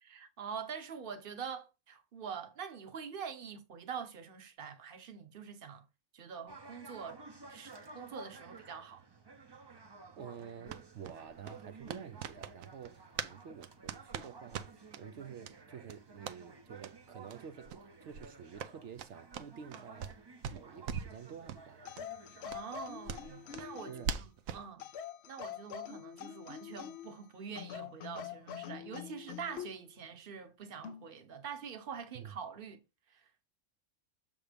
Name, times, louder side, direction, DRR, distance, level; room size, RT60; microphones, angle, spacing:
voice 1, 0.0-5.8 6.1-7.2 7.5-9.0 22.4-24.3 24.5-24.8 25.3-32.8 33.1-33.2, right 6 dB, 45° right, 1.1 m, -45 dB
sound 1, 6.5-23.9, right 3 dB, 25° right, 0.6 m, -54 dB
voice 2, 10.0-20.2 20.5-22.0 23.8-24.2 32.1-32.3, right 7 dB, 65° right, 0.9 m, -49 dB
sound 2, 10.7-13.4 13.6-15.0 15.4-15.6 15.8-16.4 16.8-16.9 17.3-17.4 17.6-17.8 18.1-20.2 20.4-21.2 21.5-21.6 21.9-22.0 22.5-24.7, right 7 dB, 85° right, 1.1 m, -42 dB
sound 3, 21.8-24.1 24.8-27.2 27.6-29.8 30.8-31.1, left 9 dB, 65° left, 0.7 m, -45 dB
6.9 x 3.6 x 5.0 m
omnidirectional pair, 1.4 m